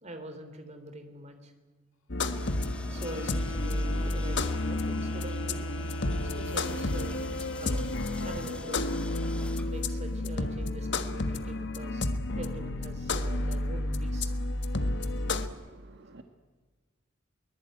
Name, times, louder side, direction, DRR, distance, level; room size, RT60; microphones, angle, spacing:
voice 1, 0.0-1.5 2.9-5.7 6.2-7.2 7.6-7.9 8.2-8.8 9.6-14.3, right 1 dB, 35° right, 8 dB, 3.2 m, -44 dB
sound 1, 2.1-15.5, left 2 dB, 60° left, 1.3 m, -31 dB
sound 2, 2.3-10.2, left 1 dB, 5° left, 1.3 m, -47 dB
Wind instrument woodwind instrument, 2.9-7.5, left 5 dB, 80° left, 2.3 m, -42 dB
voice 2, 15.3-16.2, right 2 dB, 55° right, 6 dB, 1.5 m, -52 dB
23.0 x 20.5 x 9.2 m, 1.4 s
head